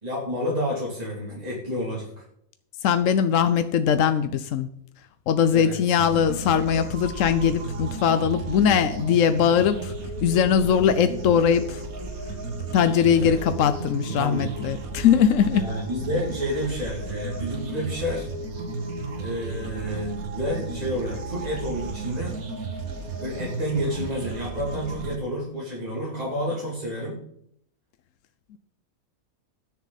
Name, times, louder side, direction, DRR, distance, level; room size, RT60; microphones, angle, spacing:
voice 1, 0.0-2.1 5.5-5.8 13.1-13.4 14.0-14.5 15.5-18.3 19.2-22.3 23.2-27.2, equal, 25° right, -6 dB, 3.0 m, -30 dB
voice 2, 2.8-4.7 5.3-9.9 10.2-11.8 12.7-15.6, left 8 dB, 70° left, 11 dB, 1.0 m, -21 dB
sound 1, 6.0-25.1, right 3 dB, 80° right, 1.9 m, -33 dB
20.0 x 7.2 x 4.1 m, 0.72 s
omnidirectional pair, 1.5 m